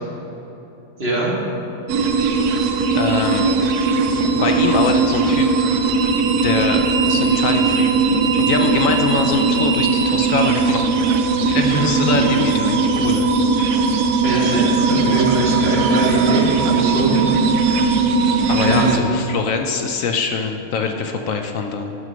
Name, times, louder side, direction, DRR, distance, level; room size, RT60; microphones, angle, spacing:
voice 1, 1.0-1.3 11.6-11.9 14.2-17.2 18.6-18.9, right 2 dB, 40° right, -5 dB, 2.1 m, -22 dB
sound 1, 1.9-19.0, right 4 dB, 90° right, 1.2 m, -18 dB
voice 2, 2.9-3.5 4.3-5.7 6.4-10.9 11.4-13.3 15.0-15.2 18.5-22.0, left 5 dB, 70° left, 5 dB, 1.0 m, -23 dB
sound 2, 13.9-14.4 14.8-16.9, right 7 dB, 70° right, 1.0 m, -31 dB
11.0 x 6.2 x 5.2 m, 3.0 s
omnidirectional pair, 1.6 m